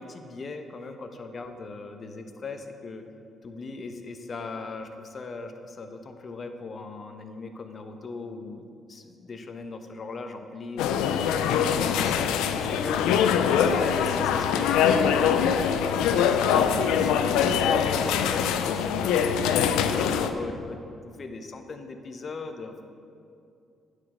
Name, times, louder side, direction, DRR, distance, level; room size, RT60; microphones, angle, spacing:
voice 1, 0.0-3.0 3.4-19.3 19.6-22.8, left 3 dB, 45° left, 6 dB, 0.9 m, -38 dB
sound 1, 10.8-20.3, left 8 dB, 90° left, 0.4 m, -23 dB
9.5 x 5.0 x 6.5 m, 2.5 s
supercardioid pair, 70°, 0 cm